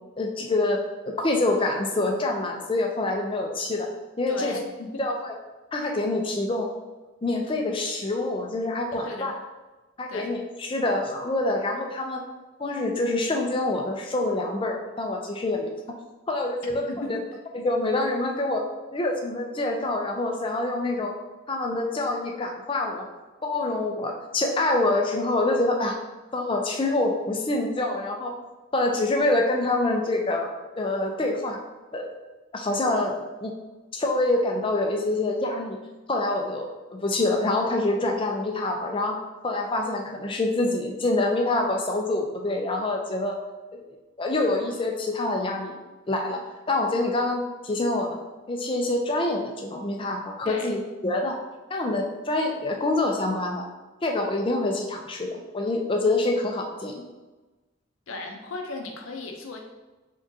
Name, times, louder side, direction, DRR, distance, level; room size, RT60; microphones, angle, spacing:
voice 1, 0.2-3.9 4.2-4.5 5.0-5.3 5.7-6.7 7.2-9.3 10.0-12.2 12.6-15.7 16.3-17.2 17.5-18.6 18.9-21.1 21.5-23.1 23.4-26.0 26.3-28.3 28.7-30.5 30.8-31.6 31.9-32.1 32.5-33.5 33.9-35.8 36.1-39.2 39.4-43.4 44.2-45.8 46.1-46.4 46.7-48.2 48.5-51.4 51.7-53.6 54.0-57.0, left 2 dB, 25° left, 2 dB, 0.5 m, -26 dB
voice 2, 4.3-4.9 8.9-9.3 10.1-10.3 16.6-17.1 50.4-50.7 58.1-59.6, left 2 dB, 80° left, 2 dB, 0.6 m, -36 dB
3.7 x 3.6 x 2.7 m, 1.2 s
head